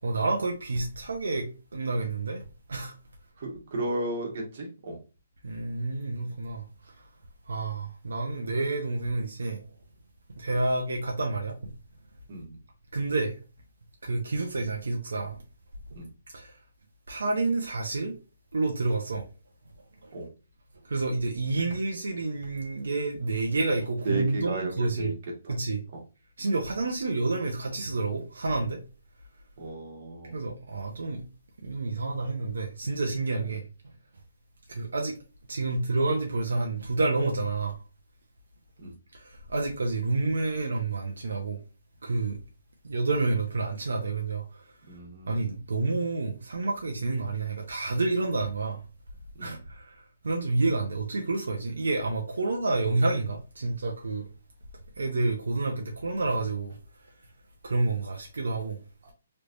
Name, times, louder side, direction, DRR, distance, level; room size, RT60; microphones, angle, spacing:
voice 1, 0.0-2.9 5.4-7.1 7.5-9.6 10.3-11.6 12.9-13.4 14.0-15.4 16.3-16.6 17.1-18.2 18.5-19.3 20.0-20.1 20.8-25.1 25.5-25.8 26.4-28.8 30.3-31.2 31.6-33.6 34.7-35.2 35.5-37.8 39.1-41.6 42.0-42.4 42.8-44.7 45.3-48.8 49.4-54.2 55.0-56.8 57.0-57.1 57.6-58.8, right 3 dB, 85° right, 0.8 m, -29 dB
voice 2, 3.4-5.0 12.3-12.6 15.9-16.1 20.1-20.3 24.0-25.1 25.4-25.5 29.6-30.4 38.8-38.9 44.9-45.4 49.4-49.6, right 2 dB, 50° right, 1.5 m, -34 dB
3.2 x 3.2 x 2.6 m
hypercardioid pair, 155°, 0 cm